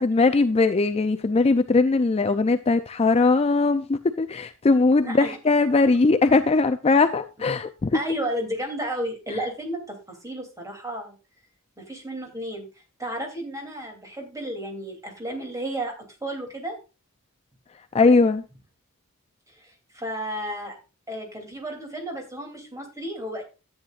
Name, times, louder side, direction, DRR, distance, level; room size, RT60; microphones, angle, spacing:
voice 1, 0.0-8.0 17.9-18.4, left 3 dB, 30° left, 0.4 m, -20 dB
voice 2, 5.0-5.4 7.9-11.1 11.8-12.7 13.0-15.9 16.2-16.8 19.5-20.8 21.1-23.4, right 1 dB, 15° right, 2.9 m, -32 dB
13.0 x 8.7 x 2.4 m
head